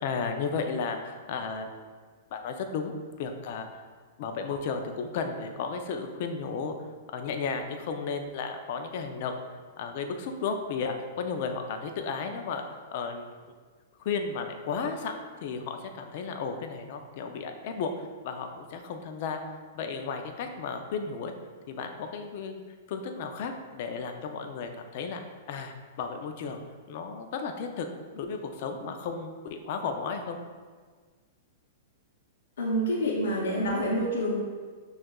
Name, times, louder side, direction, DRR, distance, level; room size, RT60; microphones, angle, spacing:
voice 1, 0.0-1.7 2.3-2.9 3.2-3.8 4.2-6.7 7.1-9.4 9.8-13.3 14.0-19.4 19.7-21.3 21.7-22.6 22.9-25.2 25.5-26.6 26.9-27.9 28.1-30.4, left 5 dB, 50° left, 5 dB, 0.4 m, -34 dB
voice 2, 32.6-34.4, equal, 85° left, -4 dB, 0.7 m, -27 dB
6.1 x 2.4 x 2.3 m, 1.5 s
hypercardioid pair, 150°, 0 cm